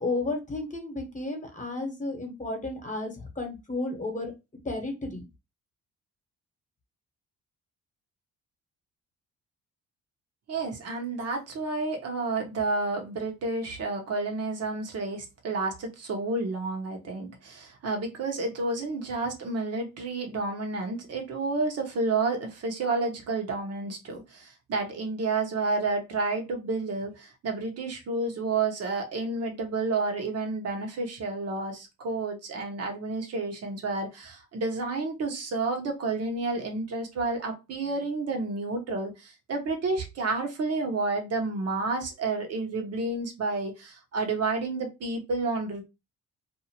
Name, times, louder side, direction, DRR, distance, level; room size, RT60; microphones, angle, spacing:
voice 1, 0.0-4.3 4.6-5.2, left 2 dB, 25° left, 1.1 m, -32 dB
voice 2, 10.5-45.8, right 3 dB, 55° right, 1.0 m, -30 dB
2.7 x 2.4 x 2.8 m
cardioid pair, 90°, 30 cm